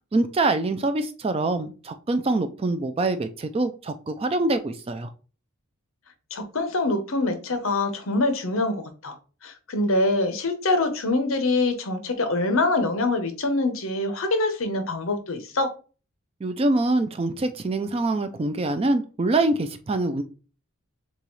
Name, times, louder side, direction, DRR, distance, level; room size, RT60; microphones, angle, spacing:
voice 1, 0.1-5.1 16.4-20.2, right 2 dB, 25° right, 0.3 m, -24 dB
voice 2, 6.3-9.2 9.4-15.7, left 2 dB, 65° left, 0.9 m, -24 dB
6.7 x 2.4 x 3.1 m
head